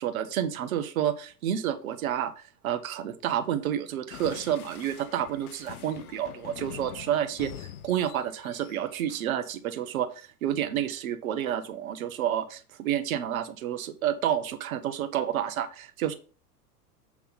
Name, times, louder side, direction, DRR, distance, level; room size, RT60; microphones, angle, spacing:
voice 1, 0.0-16.1, right 10 dB, 60° right, 8 dB, 1.1 m, -30 dB
sound 1, 4.1-9.2, left 10 dB, 65° left, 0.8 m, -45 dB
7.2 x 3.6 x 5.5 m, 0.39 s
figure-of-eight pair, 95°, 47 cm